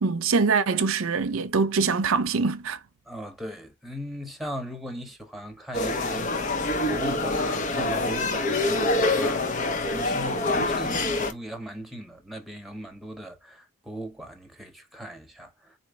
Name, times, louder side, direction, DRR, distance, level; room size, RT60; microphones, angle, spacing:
voice 1, 0.0-2.8, right 4 dB, 80° right, 0.6 m, -24 dB
voice 2, 3.1-6.6 6.9-9.5 9.8-15.8, equal, ahead, 1.2 m, -38 dB
sound 1, 5.7-11.3, left 2 dB, 40° left, 0.9 m, -25 dB
4.4 x 2.8 x 3.2 m
head